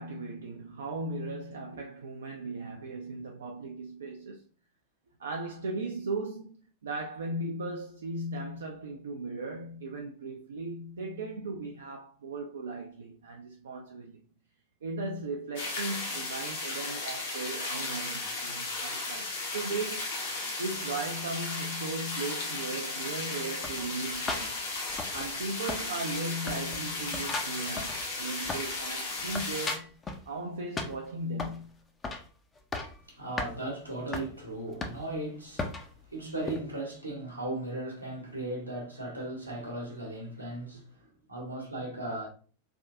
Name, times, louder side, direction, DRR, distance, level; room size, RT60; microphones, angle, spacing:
voice 1, 0.0-4.4 5.2-14.2 14.8-20.1 20.6-24.6 25.1-29.9 30.3-31.7, right 2 dB, 65° right, 0.4 m, -37 dB
sound 1, 15.6-29.8, left 3 dB, 60° left, 1.0 m, -35 dB
sound 2, 23.6-25.4 25.7-26.2 26.5-28.8 29.1-30.3 30.8-31.6 32.0-32.3 32.6-33.0 33.4-33.5 34.1-34.3 34.8-35.2 35.6-35.9 36.5-36.6, left 3 dB, 20° left, 0.5 m, -37 dB
voice 2, 33.1-42.3, right 1 dB, 85° right, 1.0 m, -37 dB
3.3 x 2.5 x 2.4 m
figure-of-eight pair, 90°, 0 cm